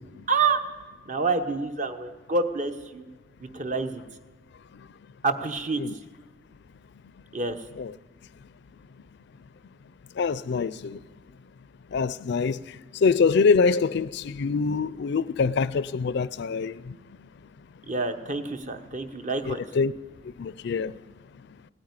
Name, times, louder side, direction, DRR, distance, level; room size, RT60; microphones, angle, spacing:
voice 1, 0.3-0.6 1.0-3.0 3.4-4.0 5.2-5.8 7.3-7.6 17.9-19.6, right 4 dB, 40° right, 0.9 m, -27 dB
voice 2, 10.2-11.0 11.9-12.6 13.0-17.0 19.5-19.9 20.4-20.9, left 5 dB, 60° left, 0.4 m, -24 dB
17.5 x 8.7 x 9.6 m
head